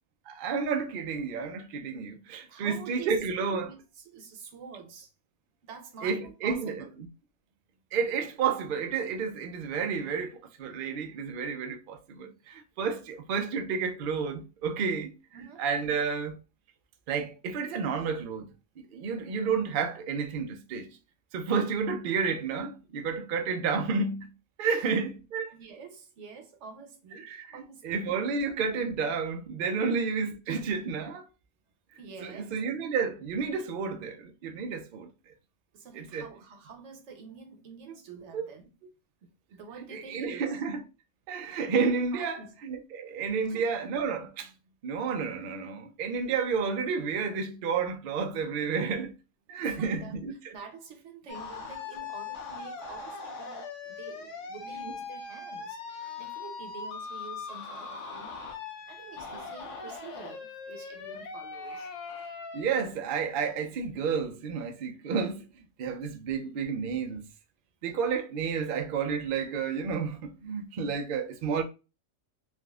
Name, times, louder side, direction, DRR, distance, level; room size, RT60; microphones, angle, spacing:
voice 1, 0.3-3.7 6.0-6.8 7.9-15.1 15.6-16.4 17.1-18.5 18.8-21.0 21.3-24.3 24.6-25.5 27.2-31.2 32.2-35.1 35.9-36.3 38.3-38.5 39.9-40.8 41.3-44.5 44.8-49.1 49.5-50.5 54.7-54.8 62.5-67.2 67.8-71.6, right 5 dB, 85° right, 0.4 m, -31 dB
voice 2, 2.5-3.1 3.6-5.1 5.6-6.9 15.3-15.6 24.7-25.0 25.5-28.0 32.0-32.6 35.7-38.7 39.2-40.6 42.1-42.6 43.4-43.7 49.6-50.1 50.5-55.8 56.2-58.4 58.9-61.9, right 5 dB, 60° right, 0.9 m, -47 dB
sound 1, 51.3-62.6, left 5 dB, 65° left, 1.0 m, -40 dB
3.4 x 2.4 x 2.3 m
omnidirectional pair, 1.5 m